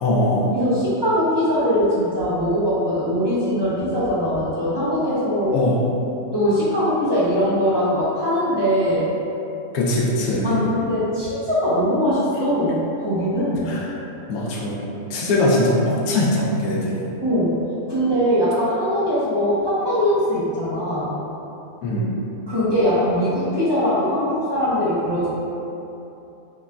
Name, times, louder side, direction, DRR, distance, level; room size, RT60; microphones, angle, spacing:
voice 1, 0.0-0.5 5.5-5.7 9.7-10.6 13.7-13.9 14.3-14.8 15.1-17.1 21.8-22.1, left 1 dB, 75° left, -4 dB, 1.1 m, -21 dB
voice 2, 0.5-5.6 6.3-9.1 10.4-13.7 17.2-17.6 17.9-21.2 22.5-25.3, equal, 25° right, -12 dB, 0.6 m, -21 dB
5.1 x 2.6 x 2.2 m, 2.9 s
omnidirectional pair, 1.6 m